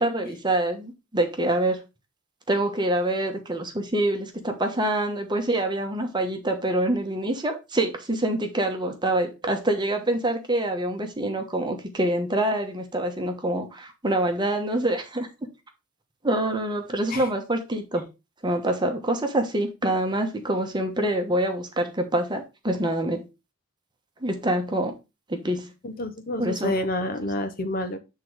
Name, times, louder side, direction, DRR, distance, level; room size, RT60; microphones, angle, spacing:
voice 1, 0.0-1.8 2.5-15.3 16.2-18.1 18.4-23.2 24.2-24.9 25.3-25.7 26.4-26.7, right 1 dB, 20° right, 1.1 m, -26 dB
voice 2, 25.8-28.0, left 1 dB, 40° left, 0.8 m, -29 dB
8.4 x 3.8 x 4.7 m
head